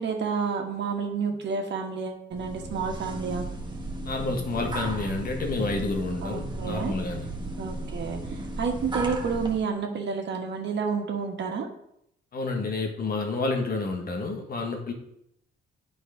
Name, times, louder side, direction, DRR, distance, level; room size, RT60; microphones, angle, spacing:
voice 1, 0.0-3.4 6.2-6.9 7.6-11.7, right 5 dB, 60° right, 2 dB, 1.6 m, -30 dB
sound 1, 2.3-9.6, right 2 dB, 25° right, 1.4 m, -35 dB
voice 2, 4.0-7.2 12.3-14.9, left 3 dB, 50° left, 3 dB, 1.7 m, -29 dB
8.9 x 4.2 x 5.1 m, 0.76 s
cardioid pair, 90°, 20 cm